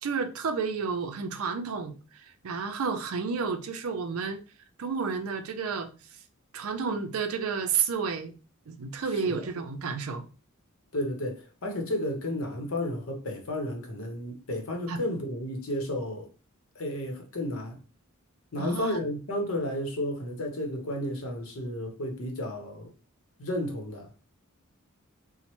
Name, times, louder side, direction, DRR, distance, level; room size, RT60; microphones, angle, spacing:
voice 1, 0.0-4.4 4.8-5.9 6.5-8.3 8.7-10.2 14.9-15.0 18.6-19.0, right 5 dB, 80° right, 0.5 m, -31 dB
voice 2, 10.9-16.3 16.7-17.8 18.5-22.9 23.4-24.1, left 1 dB, 70° left, 0.8 m, -32 dB
3.1 x 2.1 x 2.9 m
head